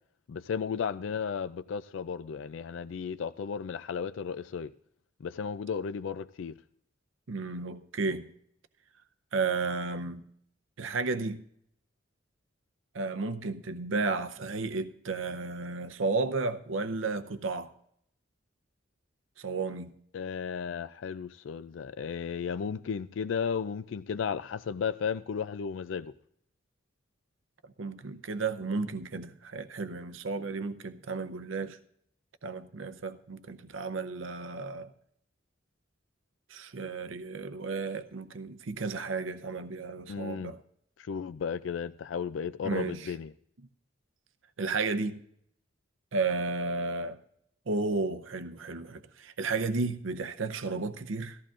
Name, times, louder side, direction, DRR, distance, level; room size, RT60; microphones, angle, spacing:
voice 1, 0.3-4.7 5.2-6.5 20.1-26.1 40.1-40.5 41.0-43.3, left 6 dB, 80° left, 0.4 m, -34 dB
voice 2, 7.3-8.3 9.3-10.2 10.8-11.4 12.9-17.7 19.4-19.9 27.8-31.8 32.4-34.9 36.5-40.6 42.6-43.1 44.6-45.2 46.1-47.2 47.7-51.4, right 3 dB, 90° right, 0.7 m, -33 dB
18.0 x 14.5 x 2.5 m
head